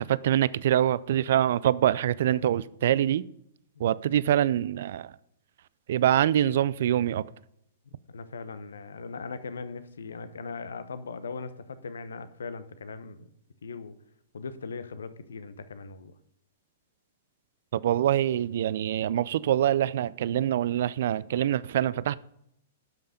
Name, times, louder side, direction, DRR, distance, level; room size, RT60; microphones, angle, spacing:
voice 1, 0.0-3.2 3.8-5.1 5.9-7.2 17.7-22.2, right 11 dB, 65° right, 0.4 m, -25 dB
voice 2, 7.9-13.3 13.6-13.9 14.3-16.1, left 4 dB, 75° left, 0.9 m, -39 dB
12.0 x 5.6 x 5.1 m
hypercardioid pair, 110°, 0 cm